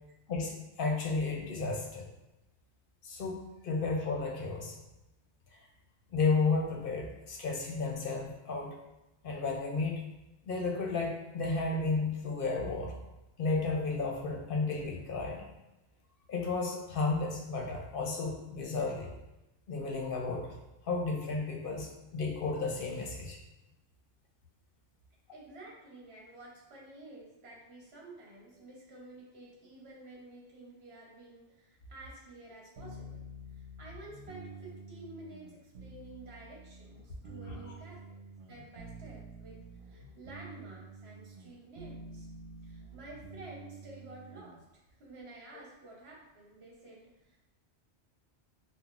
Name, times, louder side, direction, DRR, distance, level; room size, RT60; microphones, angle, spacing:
voice 1, 0.3-2.1 3.0-4.7 5.5-5.6 6.1-8.8 9.2-10.0 10.4-12.9 13.4-15.4 16.3-19.1 19.7-20.6 20.8-23.4 37.5-37.6, left 3 dB, 60° left, -1 dB, 0.7 m, -33 dB
voice 2, 25.3-33.3 33.5-38.2 38.5-42.3 42.6-44.6 45.0-47.4, right 2 dB, 65° right, -3 dB, 1.1 m, -51 dB
sound 1, 32.8-44.6, right 2 dB, 85° right, 0.9 m, -48 dB
5.4 x 2.1 x 2.4 m, 0.97 s
omnidirectional pair, 1.2 m